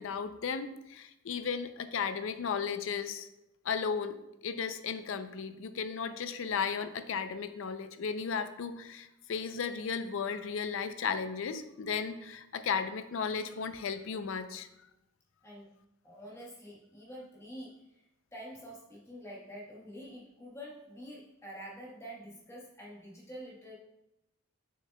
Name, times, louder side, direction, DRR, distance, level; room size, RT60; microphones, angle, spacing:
voice 1, 0.0-3.3 3.6-14.7, left 6 dB, 65° left, 11 dB, 0.4 m, -35 dB
voice 2, 16.0-18.0 18.3-23.7, equal, 15° left, -4 dB, 1.1 m, -47 dB
6.5 x 6.5 x 2.2 m, 0.89 s
head